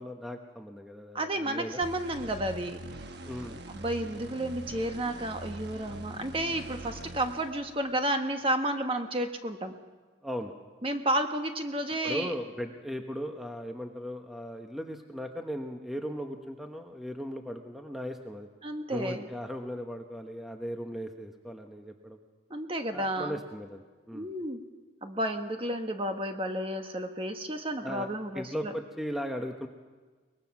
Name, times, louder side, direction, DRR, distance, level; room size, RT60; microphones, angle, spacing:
voice 1, 0.0-1.8 3.3-3.6 10.2-10.5 12.0-18.5 18.9-22.2 22.9-24.3 27.8-28.1 28.3-29.7, equal, ahead, 3 dB, 1.0 m, -37 dB
voice 2, 1.1-2.8 3.7-9.7 10.8-12.3 18.6-19.3 22.5-23.4 24.1-24.6 25.0-28.7, right 1 dB, 25° right, 5 dB, 1.2 m, -31 dB
sound 1, 1.8-8.3, right 1 dB, 55° right, 1.2 m, -44 dB
23.0 x 20.5 x 6.0 m, 1.4 s
head